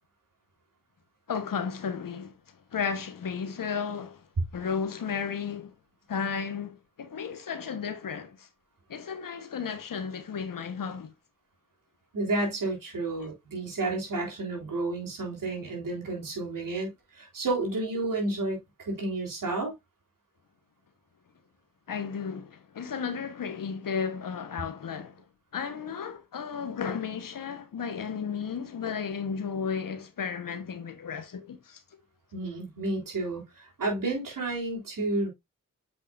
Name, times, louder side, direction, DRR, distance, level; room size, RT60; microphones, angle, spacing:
voice 1, 1.3-4.3 4.5-5.7 6.1-8.5 8.9-11.1 21.9-25.2 25.5-31.8, left 6 dB, 80° left, 1.2 m, -34 dB
voice 2, 12.1-19.7 32.3-35.3, right 2 dB, 75° right, 3.5 m, -31 dB
7.6 x 5.5 x 2.5 m
cardioid pair, 40°, 33 cm